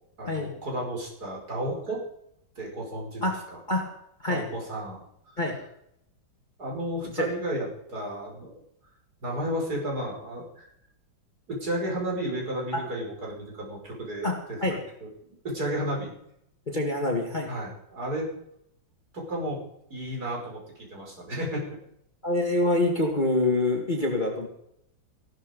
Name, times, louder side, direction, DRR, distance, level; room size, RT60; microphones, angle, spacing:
voice 1, 0.2-2.0 2.6-3.6 4.3-5.0 6.6-8.6 9.2-10.7 11.5-16.1 17.5-18.3 19.1-19.6 19.9-21.6, right 1 dB, 50° right, -2 dB, 5.8 m, -33 dB
voice 2, 16.7-17.5 22.2-24.5, left 2 dB, 25° left, 2 dB, 2.0 m, -25 dB
15.5 x 12.5 x 5.2 m, 0.74 s
omnidirectional pair, 2.1 m